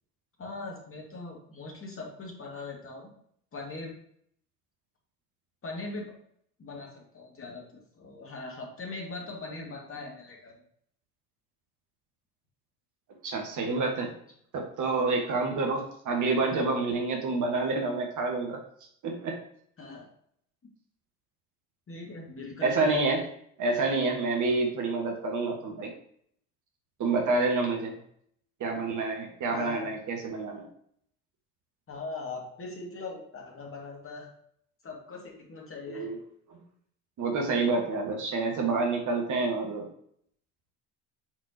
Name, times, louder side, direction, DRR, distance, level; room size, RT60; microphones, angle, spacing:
voice 1, 0.4-3.1 3.5-3.9 5.6-6.1 6.6-10.5 15.3-15.6 19.8-20.1 21.9-23.3 29.5-29.9 31.9-34.3 34.8-36.1, left 3 dB, 30° left, -1 dB, 2.3 m, -40 dB
voice 2, 13.2-14.1 14.5-18.6 19.0-19.4 22.6-23.2 23.6-25.9 27.0-27.9 28.6-30.7 35.9-36.2 36.5-36.6 37.2-39.9, right 3 dB, 45° right, 2 dB, 1.6 m, -28 dB
8.8 x 4.3 x 2.9 m, 0.66 s
hypercardioid pair, 65°, 44 cm